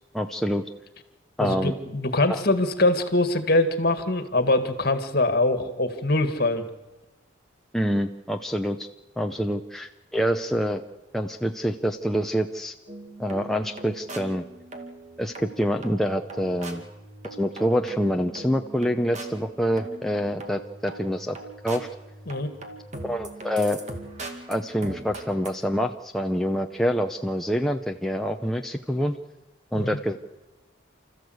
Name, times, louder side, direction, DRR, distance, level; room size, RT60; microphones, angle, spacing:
voice 1, 0.1-0.6 1.4-1.8 2.3-2.4 7.7-8.9 9.2-10.8 11.1-12.7 13.2-14.4 15.2-16.8 17.3-21.4 21.6-21.9 23.0-23.8 24.5-29.2 29.7-30.2, equal, ahead, 3 dB, 0.7 m, -26 dB
voice 2, 1.4-6.7 22.3-22.5 29.7-29.9, left 2 dB, 50° left, 9 dB, 2.0 m, -23 dB
sound 1, 12.9-25.5, right 2 dB, 35° right, 2.3 m, -41 dB
30.0 x 14.0 x 8.0 m, 1.1 s
head